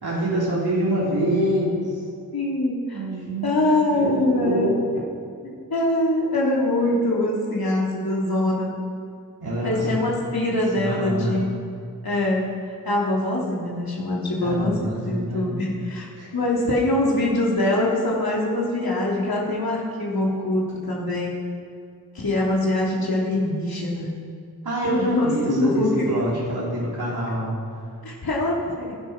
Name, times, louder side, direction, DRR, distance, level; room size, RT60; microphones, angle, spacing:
voice 1, 0.0-2.0 2.9-3.6 3.9-4.8 9.4-10.0 10.7-11.4 14.4-15.5 16.2-16.3 24.6-27.6, right 1 dB, 80° right, -7 dB, 4.0 m, -25 dB
voice 2, 2.3-3.0 3.4-4.7 5.4-8.8 9.6-11.7 12.0-12.5 12.8-21.3 22.1-24.1 24.9-26.1 28.0-28.9, left 1 dB, 70° left, -4 dB, 3.3 m, -23 dB
18.0 x 11.5 x 6.0 m, 2.4 s
wide cardioid pair, 70°, 38 cm